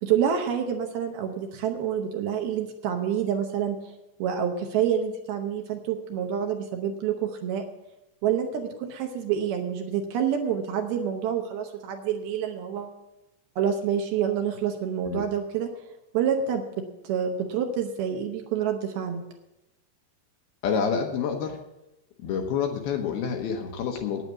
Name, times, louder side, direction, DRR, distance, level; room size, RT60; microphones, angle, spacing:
voice 1, 0.0-7.6 8.2-13.0 13.6-15.7 16.1-19.2, right 8 dB, 75° right, 4 dB, 2.5 m, -27 dB
voice 2, 20.6-21.6 22.2-24.2, left 6 dB, 70° left, 3 dB, 2.6 m, -28 dB
9.2 x 9.1 x 7.2 m, 0.94 s
omnidirectional pair, 5.1 m